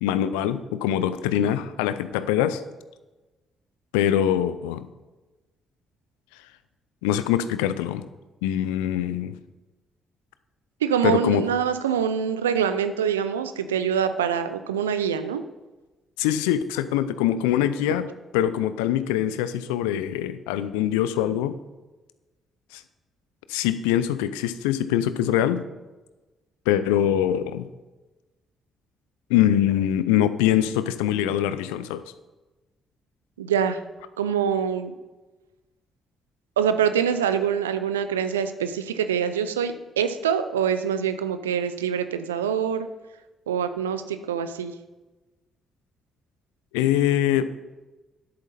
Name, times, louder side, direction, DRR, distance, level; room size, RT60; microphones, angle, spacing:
voice 1, 0.0-2.6 3.9-4.9 7.0-8.0 8.4-9.4 11.0-11.4 16.2-18.0 18.3-21.6 22.7-22.8 23.5-25.6 26.7-27.7 29.3-32.0 46.7-47.5, left 11 dB, 80° left, 13 dB, 0.4 m, -23 dB
voice 2, 10.8-15.4 33.4-33.8 34.2-34.9 36.6-42.9 43.5-44.7, right 8 dB, 90° right, 11 dB, 0.5 m, -25 dB
10.5 x 8.2 x 4.2 m, 1.1 s
hypercardioid pair, 45°, 0 cm